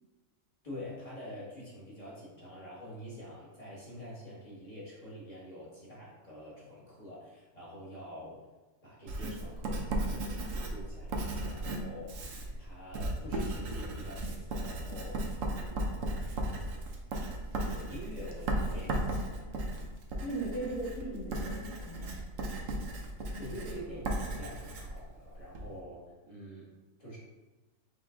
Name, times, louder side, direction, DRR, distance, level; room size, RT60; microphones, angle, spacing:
voice 1, 0.6-8.4 8.8-12.3 12.6-15.3 15.5-16.0 17.6-19.5 23.4-26.7 27.0-27.2, equal, 25° left, -8 dB, 1.5 m, -46 dB
Writing, 9.1-25.7, right 1 dB, 75° right, 1.1 m, -36 dB
voice 2, 20.2-22.6 23.3-23.5, right 2 dB, 75° left, -8 dB, 1.8 m, -39 dB
5.3 x 2.6 x 3.7 m, 1.2 s
omnidirectional pair, 1.4 m